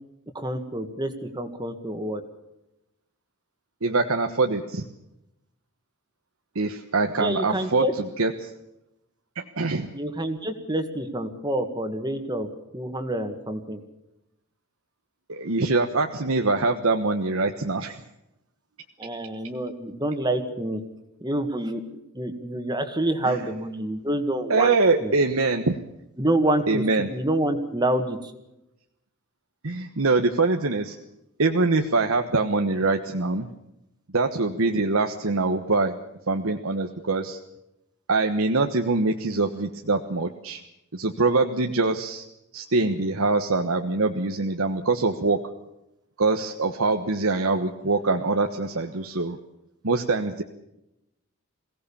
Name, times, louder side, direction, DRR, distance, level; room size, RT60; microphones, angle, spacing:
voice 1, 0.3-2.2 7.2-7.9 9.9-12.5 12.7-13.8 19.0-20.8 21.2-21.8 22.1-24.8 25.0-25.1 26.2-28.3, right 1 dB, 20° right, 7 dB, 1.9 m, -27 dB
voice 2, 3.8-4.8 6.5-7.8 8.2-8.5 9.3-9.9 15.3-18.0 23.3-23.4 24.5-25.8 26.7-27.1 29.6-31.0 31.4-33.5 34.1-36.0 36.3-37.4 38.1-40.6 40.9-42.3 42.5-45.4 46.2-49.4 49.8-50.4, right 3 dB, 90° right, 5 dB, 1.3 m, -24 dB
22.5 x 17.5 x 7.2 m, 0.88 s
head